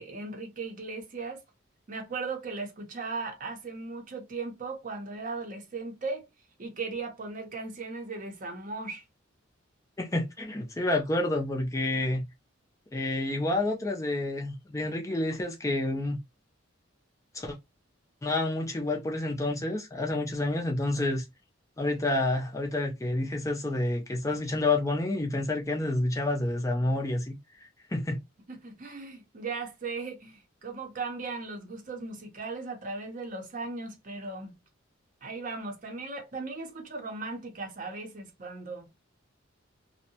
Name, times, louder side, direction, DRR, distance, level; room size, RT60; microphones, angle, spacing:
voice 1, 0.0-1.4 1.9-6.3 6.6-9.0 28.5-34.5 35.2-38.9, right 3 dB, 40° right, 0.6 m, -37 dB
voice 2, 10.0-12.3 12.9-16.2 17.3-17.6 18.2-21.2 21.8-27.4 27.9-28.2, left 2 dB, 15° left, 0.4 m, -29 dB
2.6 x 2.0 x 2.7 m
head